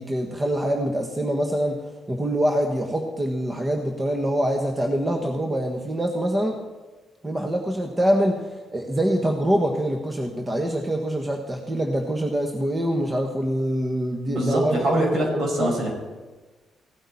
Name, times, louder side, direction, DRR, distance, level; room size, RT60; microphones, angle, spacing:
voice 1, 0.0-1.8 2.1-6.6 7.2-8.4 8.7-14.8 15.2-15.7, right 1 dB, 20° right, 2 dB, 1.4 m, -24 dB
voice 2, 14.3-15.9, right 1 dB, 60° right, 0 dB, 5.0 m, -23 dB
16.5 x 9.0 x 4.2 m, 1.3 s
supercardioid pair, 70°, 0 cm